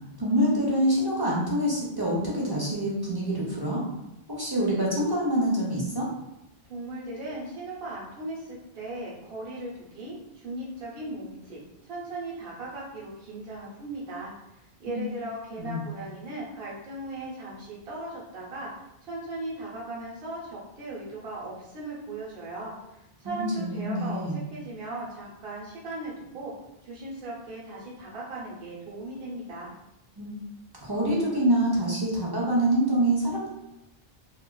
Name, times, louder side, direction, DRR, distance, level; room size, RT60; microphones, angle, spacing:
voice 1, 0.2-3.8 4.3-6.1 14.9-15.0 15.6-15.8 23.2-24.4 30.2-30.3 30.8-33.5, right 1 dB, 35° right, -5 dB, 0.4 m, -26 dB
voice 2, 6.7-18.7 19.0-26.5 26.8-29.7, right 2 dB, 70° right, -6 dB, 1.0 m, -38 dB
2.9 x 2.4 x 2.2 m, 0.87 s
omnidirectional pair, 1.0 m